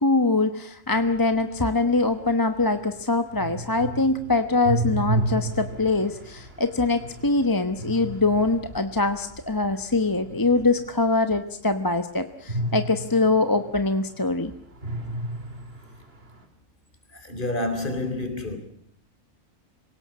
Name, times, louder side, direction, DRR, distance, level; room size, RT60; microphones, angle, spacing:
voice 1, 0.0-14.5, left 3 dB, 15° left, 1.0 m, -23 dB
sound 1, 0.9-11.2 12.5-14.4 14.7-16.4, right 1 dB, 45° right, 2.8 m, -33 dB
voice 2, 17.1-18.6, left 2 dB, 35° left, 4.0 m, -28 dB
26.5 x 18.0 x 8.6 m
omnidirectional pair, 1.4 m